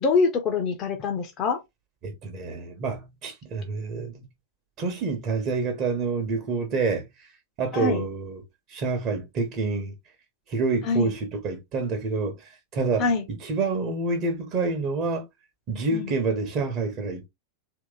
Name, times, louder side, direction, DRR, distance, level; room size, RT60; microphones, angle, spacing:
voice 1, 0.0-1.6 7.7-8.1 10.8-11.1 13.0-13.2 15.9-16.1, left 4 dB, 35° left, 0.8 m, -24 dB
voice 2, 2.0-4.2 4.8-7.1 7.6-8.4 8.7-9.9 10.5-13.1 13.4-15.2 15.7-17.3, right 3 dB, 40° right, 1.1 m, -28 dB
3.0 x 2.9 x 3.8 m
figure-of-eight pair, 90°, 0 cm